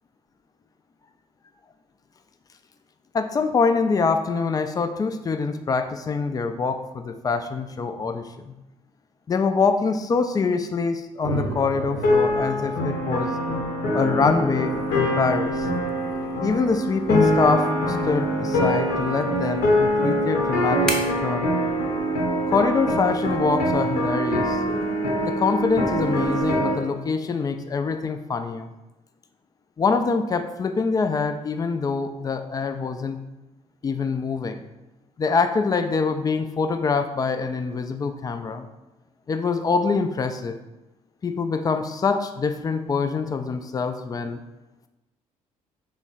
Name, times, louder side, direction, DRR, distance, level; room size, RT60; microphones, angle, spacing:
voice 1, 3.1-8.5 9.3-13.3 13.9-15.7 16.4-21.0 21.2-21.5 22.5-24.6 25.2-28.7 29.8-33.2 33.8-34.6 35.2-38.7 39.3-40.6 41.2-44.4, left 4 dB, 20° left, 8 dB, 0.3 m, -24 dB
sound 1, 11.2-15.9, right 3 dB, 70° right, 0.6 m, -36 dB
sound 2, 12.0-26.7, equal, 55° left, 0.7 m, -24 dB
sound 3, 14.7-26.6, equal, 5° left, 0.7 m, -41 dB
3.8 x 2.0 x 3.8 m, 1.0 s
figure-of-eight pair, 45°, 18 cm